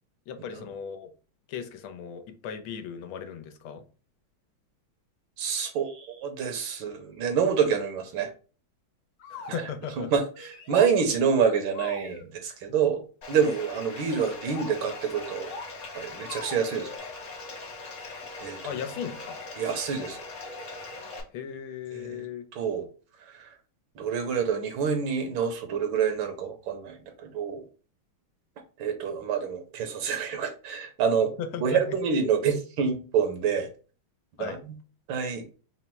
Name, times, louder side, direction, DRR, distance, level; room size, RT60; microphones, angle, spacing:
voice 1, 0.3-1.1 1.5-3.8 9.3-10.1 18.6-19.4 21.3-22.5 31.4-32.0 34.4-34.6, left 7 dB, 90° left, 1.5 m, -37 dB
voice 2, 5.4-8.3 9.5-9.7 10.0-15.5 15.9-17.0 18.4-18.6 19.5-20.2 21.9-22.3 22.5-22.9 23.2-23.5 24.0-27.6 28.8-31.3 31.6-33.7 34.4-34.7 35.1-35.5, right 6 dB, 75° right, 1.5 m, -27 dB
sound 1, 9.2-9.7 10.3-10.9 11.7-12.3 13.3-13.7 14.2-14.7 15.2-15.7 16.2-17.0, left 4 dB, 70° left, 1.3 m, -42 dB
Bathtub (filling or washing), 13.2-21.2, left 3 dB, 50° left, 1.0 m, -41 dB
4.1 x 2.0 x 4.3 m
omnidirectional pair, 2.3 m